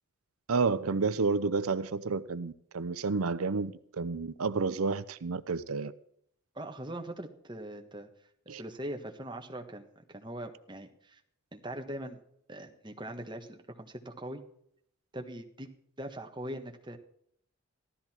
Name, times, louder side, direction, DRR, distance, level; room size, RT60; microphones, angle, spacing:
voice 1, 0.5-5.9 8.5-8.6, right 4 dB, 85° right, 0.6 m, -30 dB
voice 2, 6.5-8.1 8.4-11.2 11.5-12.2 12.5-14.4 15.1-15.7 16.0-17.0, right 1 dB, 20° right, 1.5 m, -41 dB
15.5 x 13.0 x 4.5 m
head